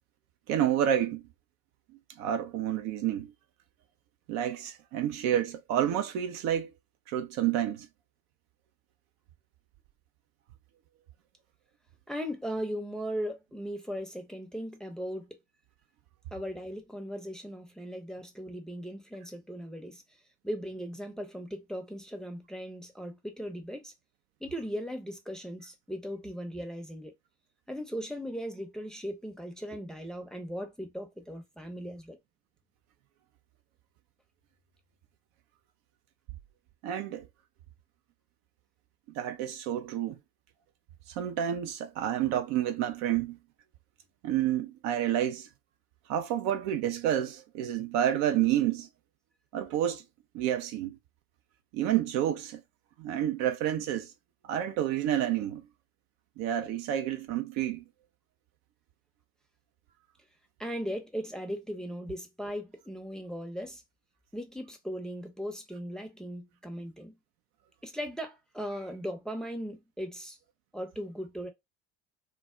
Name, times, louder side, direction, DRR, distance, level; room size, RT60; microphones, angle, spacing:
voice 1, 0.5-1.2 2.2-3.3 4.3-6.7 7.1-7.9 36.8-37.3 39.1-40.2 41.1-43.4 44.2-45.5 46.1-48.9 49.5-50.0 50.3-51.0 51.7-52.6 53.0-54.1 54.4-55.6 56.4-57.8, right 11 dB, 50° right, 0.5 m, -29 dB
voice 2, 12.1-15.4 16.3-20.0 20.4-23.9 24.4-27.1 27.7-32.2 60.6-63.8 64.3-67.2 67.8-70.4 70.7-71.5, equal, ahead, 0.6 m, -38 dB
2.2 x 2.0 x 3.6 m
hypercardioid pair, 70°, 35 cm